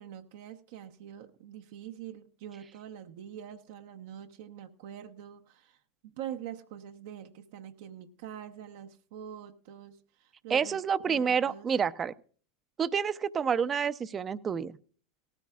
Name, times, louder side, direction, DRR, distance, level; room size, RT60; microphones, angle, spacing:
voice 1, 0.0-11.7, right 10 dB, 65° right, 0.8 m, -45 dB
voice 2, 10.5-12.1 12.8-14.8, right 7 dB, 25° right, 0.6 m, -28 dB
18.5 x 13.5 x 2.4 m
hypercardioid pair, 95°, 0 cm